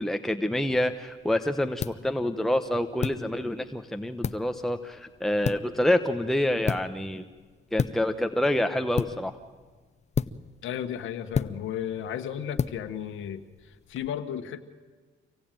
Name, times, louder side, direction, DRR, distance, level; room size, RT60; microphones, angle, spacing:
voice 1, 0.0-7.3 7.7-9.4, left 1 dB, ahead, 7 dB, 0.9 m, -27 dB
sound 1, 0.6-14.1, left 6 dB, 35° left, 0.6 m, -35 dB
voice 2, 10.6-14.6, left 9 dB, 80° left, 7 dB, 1.2 m, -34 dB
25.5 x 17.0 x 9.0 m, 1.4 s
cardioid pair, 90°, 20 cm